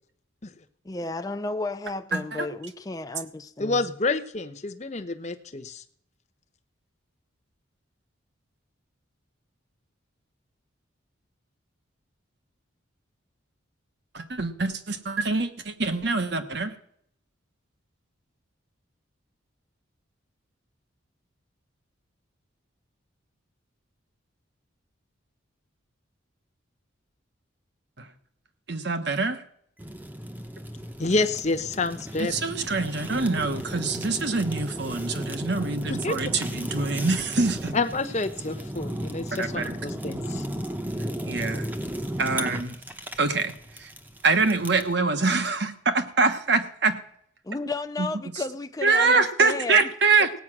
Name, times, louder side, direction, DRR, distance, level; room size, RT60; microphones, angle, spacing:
voice 1, 0.8-3.8 47.4-49.8, left 2 dB, 15° left, 0.5 m, -33 dB
voice 2, 2.1-2.5 14.1-16.8 28.0-28.1 28.7-29.4 32.2-37.8 39.3-39.8 41.0-41.7 42.2-42.8 43.2-43.9 44.2-47.0 48.0-48.1 48.3-48.4 48.8-50.3, right 3 dB, 55° right, 1.2 m, -25 dB
voice 3, 3.6-5.8 31.0-32.4 36.0-36.1 37.7-40.4, left 3 dB, 35° left, 0.9 m, -28 dB
Fire, 29.8-44.9, equal, 10° right, 0.8 m, -35 dB
17.0 x 8.8 x 6.1 m
head